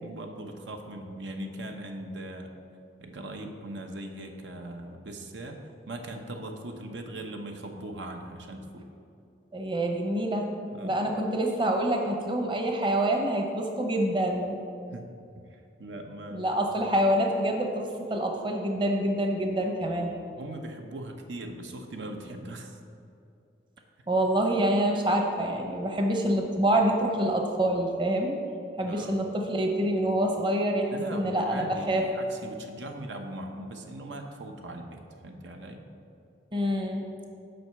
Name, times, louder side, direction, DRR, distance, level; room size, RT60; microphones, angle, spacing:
voice 1, 0.0-2.5 3.0-5.6 5.9-8.9 10.7-11.1 14.9-15.1 15.5-16.7 20.3-22.8 28.8-29.3 30.9-35.9, right 1 dB, 90° right, 4 dB, 0.8 m, -40 dB
voice 2, 9.5-10.5 10.8-14.6 16.3-20.1 24.1-28.3 28.8-32.1 36.5-37.0, right 1 dB, 25° right, 2 dB, 0.8 m, -26 dB
7.7 x 5.3 x 6.8 m, 2.5 s
head